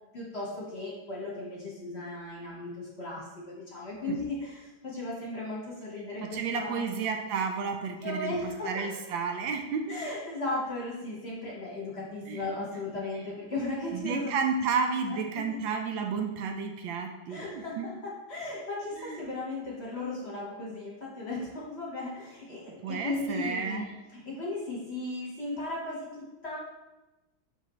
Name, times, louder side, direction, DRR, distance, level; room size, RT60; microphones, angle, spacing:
voice 1, 0.1-6.9 8.0-9.0 9.9-14.4 15.0-15.6 17.3-26.6, left 2 dB, 40° left, -5 dB, 1.1 m, -36 dB
voice 2, 6.3-8.3 8.6-9.9 12.3-12.4 13.9-17.9 19.0-19.2 22.8-23.9, right 5 dB, 75° right, 4 dB, 1.3 m, -31 dB
5.8 x 5.7 x 3.1 m, 1.1 s
omnidirectional pair, 2.4 m